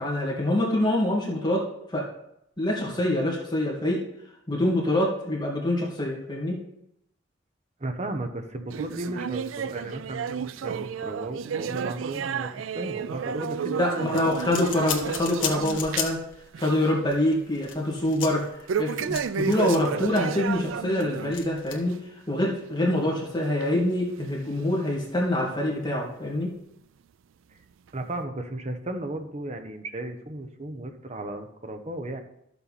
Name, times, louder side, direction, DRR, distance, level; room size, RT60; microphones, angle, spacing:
voice 1, 0.0-1.7 1.9-2.1 2.6-4.0 4.5-6.6 13.7-16.2 16.6-22.0 22.3-26.5, left 1 dB, 20° left, -2 dB, 2.3 m, -25 dB
voice 2, 7.8-14.1 27.9-32.2, right 1 dB, 35° right, 6 dB, 1.0 m, -35 dB
sound 1, 8.7-16.2 16.5-16.9 17.2-17.3 18.7-21.4 21.8-21.9 22.6-22.7 23.6-23.7 24.5-24.6, right 6 dB, 80° right, 0.4 m, -32 dB
sound 2, 14.0-16.4 16.6-16.7 17.1-20.1 20.5-21.7, left 8 dB, 70° left, 1.7 m, -34 dB
13.0 x 7.1 x 4.2 m, 0.80 s
head